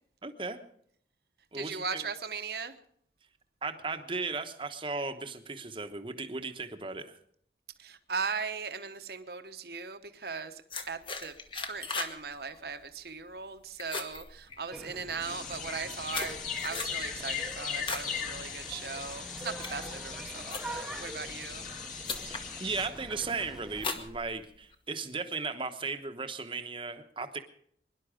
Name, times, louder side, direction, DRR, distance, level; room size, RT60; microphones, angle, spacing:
voice 1, 0.2-0.6 1.5-2.0 3.6-7.2 22.2-27.4, right 4 dB, 30° right, 8 dB, 1.0 m, -36 dB
voice 2, 1.5-2.8 7.8-16.4 16.6-21.7, right 5 dB, 55° right, 8 dB, 1.1 m, -38 dB
sound 1, 10.7-12.2 12.5-12.8 13.2-13.5 13.8-15.0 15.6-18.1 18.5-18.9 19.4-21.0 21.7-21.8 22.0-22.5 23.0-23.3 23.8-24.8, left 4 dB, 30° left, 1.2 m, -38 dB
sound 2, 14.7-23.9, right 1 dB, 5° right, 0.9 m, -45 dB
sound 3, 15.2-22.9, left 7 dB, 45° left, 2.0 m, -39 dB
22.5 x 11.0 x 5.0 m, 0.66 s
head